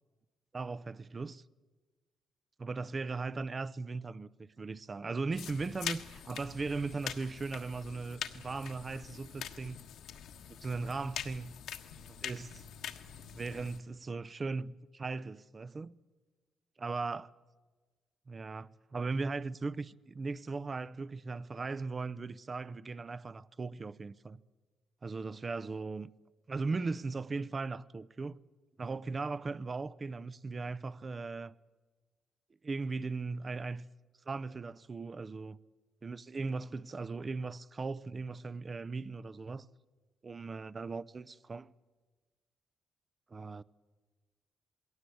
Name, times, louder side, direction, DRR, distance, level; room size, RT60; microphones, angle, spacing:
voice 1, 0.5-1.4 2.6-9.8 10.6-11.5 12.2-12.6 13.3-16.0 16.8-17.3 18.3-24.4 25.0-26.1 26.5-28.4 28.8-31.5 32.6-33.9 34.3-35.6 36.0-39.7 40.2-41.7 43.3-43.6, right 4 dB, 30° right, 0.6 m, -38 dB
sound 1, 5.3-13.8, left 9 dB, 75° left, 1.4 m, -44 dB
21.0 x 17.5 x 8.4 m
cardioid pair, 90°, 0 cm